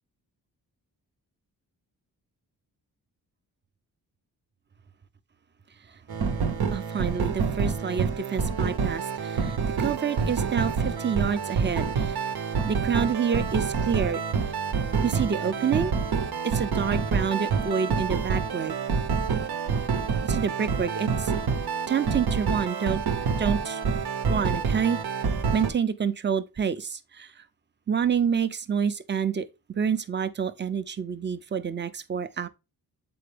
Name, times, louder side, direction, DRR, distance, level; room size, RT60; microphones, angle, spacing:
sound 1, 6.1-25.7, right 5 dB, 80° right, 0.9 m, -27 dB
voice 1, 6.7-12.1 12.7-14.2 15.0-15.9 16.4-18.7 20.2-21.3 21.9-23.0 23.4-23.8 24.3-25.0 25.5-27.3 27.9-29.5 29.8-32.5, right 7 dB, 30° right, 0.5 m, -28 dB
7.8 x 4.3 x 3.3 m
wide cardioid pair, 110°, 38 cm